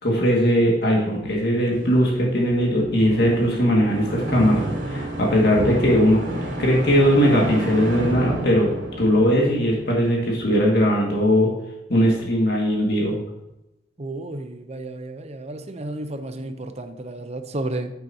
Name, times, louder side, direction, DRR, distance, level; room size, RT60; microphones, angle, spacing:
voice 1, 0.0-8.7 9.0-11.5 11.9-13.1, equal, 60° left, -2 dB, 2.2 m, -19 dB
sound 1, 1.7-10.5, right 1 dB, 85° right, 3.0 m, -31 dB
voice 2, 14.0-17.9, right 2 dB, 35° right, 8 dB, 0.8 m, -32 dB
10.5 x 8.2 x 2.9 m, 0.89 s
head